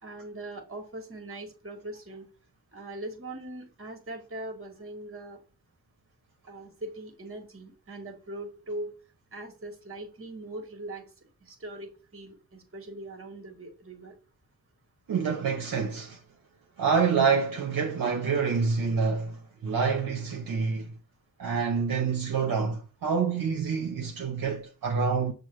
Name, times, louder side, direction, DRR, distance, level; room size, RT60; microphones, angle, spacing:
voice 1, 0.0-2.3 2.7-5.4 6.5-8.9 9.3-11.0 11.4-14.2, right 1 dB, 35° right, 1.4 m, -41 dB
voice 2, 15.1-16.2 16.8-20.9 21.4-25.3, right 5 dB, 60° right, 0.8 m, -27 dB
6.3 x 2.1 x 3.2 m
cardioid pair, 70°, 39 cm